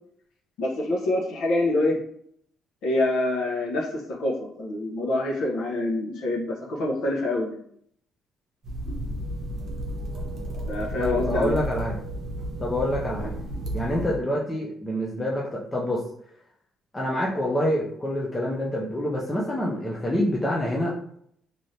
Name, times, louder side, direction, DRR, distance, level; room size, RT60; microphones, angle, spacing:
voice 1, 0.6-2.0 2.8-7.6 10.7-11.6, left 2 dB, 75° left, -1 dB, 0.8 m, -26 dB
sound 1, 8.6-14.2, right 1 dB, 40° right, 0.7 m, -32 dB
voice 2, 11.0-12.0 12.6-13.3 13.7-16.0 16.9-20.9, left 1 dB, 10° left, -4 dB, 0.4 m, -26 dB
3.2 x 2.6 x 2.7 m, 0.67 s
cardioid pair, 170°, 0 cm